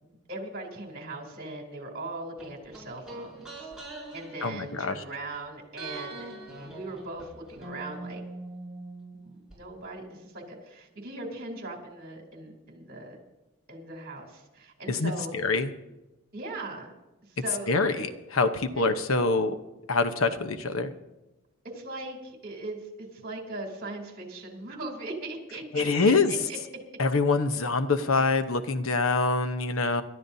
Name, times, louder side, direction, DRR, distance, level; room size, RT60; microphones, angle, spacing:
voice 1, 0.0-3.7 4.1-6.3 6.6-8.2 9.1-13.2 13.7-15.4 16.3-16.9 17.2-18.1 18.7-18.9 21.7-26.6, right 2 dB, 50° right, 1 dB, 3.3 m, -39 dB
sound 1, 2.4-5.4 5.7-9.6 9.8-9.9, right 2 dB, 5° right, 6.6 m, -43 dB
voice 2, 4.4-4.9 14.9-15.7 17.7-19.6 19.9-20.9 25.7-26.3 27.0-30.0, left 3 dB, 80° left, 9 dB, 1.0 m, -25 dB
27.5 x 12.5 x 2.8 m, 1.0 s
head